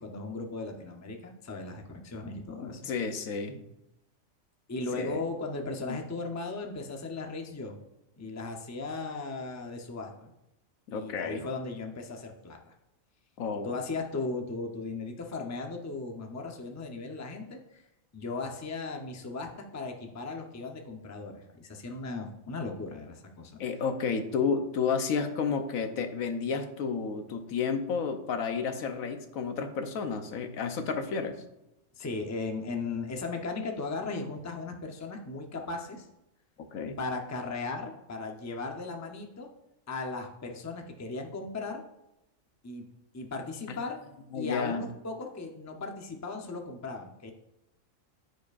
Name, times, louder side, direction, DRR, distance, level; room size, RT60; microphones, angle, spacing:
voice 1, 0.0-2.8 4.7-7.8 8.2-10.3 10.9-12.7 13.6-17.8 18.1-23.5 31.9-36.1 37.0-39.5 39.9-41.8 42.6-42.8 43.1-44.0 44.3-47.3, left 3 dB, 20° left, 3 dB, 0.5 m, -37 dB
voice 2, 2.6-3.6 4.9-5.2 5.9-6.0 10.9-11.4 13.4-13.8 23.6-31.4 36.7-37.0 43.7-43.8 44.3-44.8, left 5 dB, 90° left, 7 dB, 1.2 m, -31 dB
14.0 x 4.9 x 2.5 m, 0.89 s
omnidirectional pair, 1.4 m